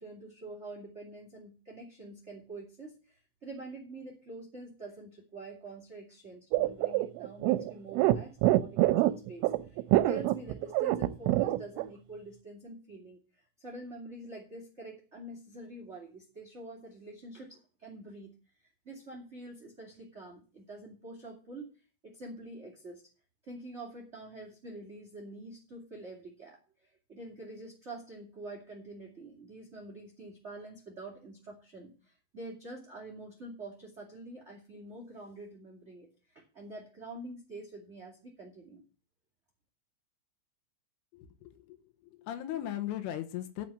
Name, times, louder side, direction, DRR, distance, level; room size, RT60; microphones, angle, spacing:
voice 1, 0.0-18.3 18.8-21.7 22.0-23.0 23.4-38.8, right 2 dB, 25° right, 0 dB, 1.5 m, -46 dB
sound 1, 6.5-11.8, right 16 dB, 85° right, 3.1 m, -25 dB
voice 2, 41.1-41.8 42.2-43.7, left 12 dB, 90° left, 6 dB, 3.6 m, -37 dB
11.5 x 6.0 x 7.3 m, 0.36 s
omnidirectional pair, 5.6 m